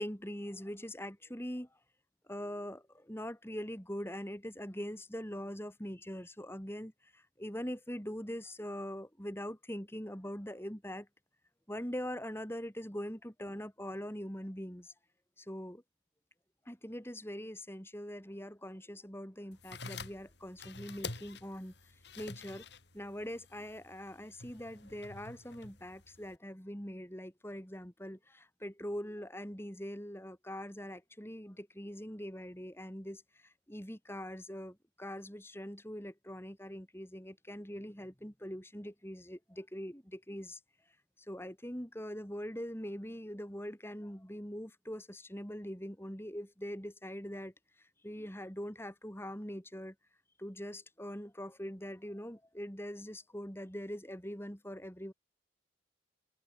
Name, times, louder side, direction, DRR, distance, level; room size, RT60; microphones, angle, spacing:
voice 1, 0.0-1.7 2.3-11.1 11.7-14.9 15.4-15.8 16.7-21.7 22.2-22.6 22.9-33.2 33.7-40.6 41.3-47.5 48.0-49.9 50.4-55.1, equal, 15° left, 7.2 m, -42 dB
sound 1, 19.5-26.4, left 4 dB, 65° left, 5.6 m, -48 dB
head